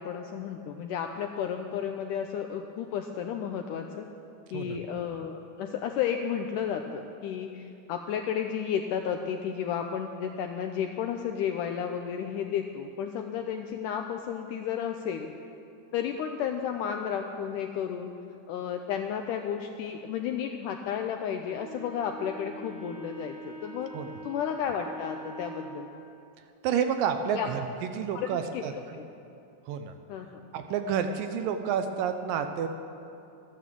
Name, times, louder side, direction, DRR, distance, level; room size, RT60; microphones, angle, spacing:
voice 1, 0.0-4.1 4.5-15.3 15.9-18.1 18.5-23.9 24.2-25.9 27.3-27.5 28.1-28.3 28.5-28.6 28.9-29.1 30.1-30.4, left 8 dB, 85° left, 4 dB, 1.9 m, -32 dB
Wind instrument woodwind instrument, 21.4-25.8, right 2 dB, 5° right, 3.7 m, -43 dB
voice 2, 26.6-27.6 27.9-29.0 29.7-29.9 30.5-32.7, right 7 dB, 75° right, 7 dB, 2.2 m, -29 dB
13.5 x 10.0 x 7.5 m, 2.8 s
omnidirectional pair, 4.3 m